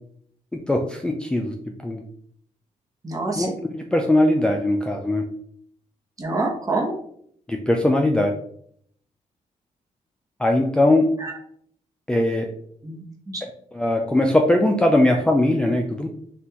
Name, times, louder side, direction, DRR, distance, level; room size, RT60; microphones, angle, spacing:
voice 1, 0.7-1.5 1.8-2.0 3.4-5.2 7.5-8.4 10.4-11.1 12.1-12.5 13.7-16.1, left 1 dB, 5° left, 2 dB, 0.4 m, -20 dB
voice 2, 3.0-3.5 6.2-7.0 11.2-11.4 12.8-13.4, right 2 dB, 25° right, 0 dB, 1.0 m, -27 dB
5.5 x 2.5 x 2.9 m, 0.65 s
cardioid pair, 110°, 13 cm